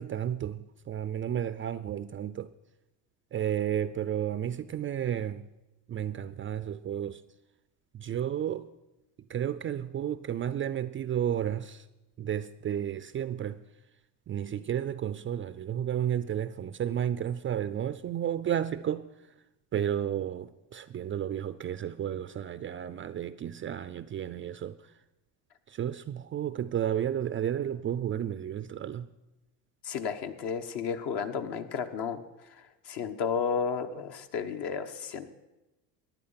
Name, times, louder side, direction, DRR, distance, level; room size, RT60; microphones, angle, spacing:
voice 1, 0.0-2.5 3.3-5.5 5.9-7.2 7.9-8.7 9.3-11.9 12.2-13.6 14.3-19.1 19.7-24.9 25.7-29.1, right 10 dB, 25° right, 0.4 m, -32 dB
voice 2, 29.8-32.2 32.5-35.3, left 6 dB, 55° left, 1.4 m, -33 dB
15.0 x 10.5 x 5.7 m
supercardioid pair, 90°, 47 cm